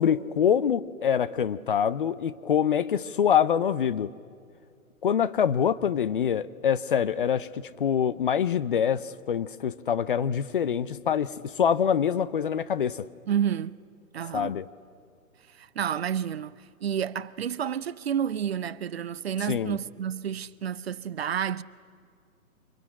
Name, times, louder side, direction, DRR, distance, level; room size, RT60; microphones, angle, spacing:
voice 1, 0.0-4.1 5.0-13.0 14.3-14.7 19.5-19.8, left 8 dB, 40° left, 0.6 m, -25 dB
voice 2, 13.3-13.8 14.1-14.6 15.5-21.6, right 9 dB, 45° right, 0.6 m, -30 dB
25.0 x 23.0 x 9.8 m
figure-of-eight pair, 130°, 43 cm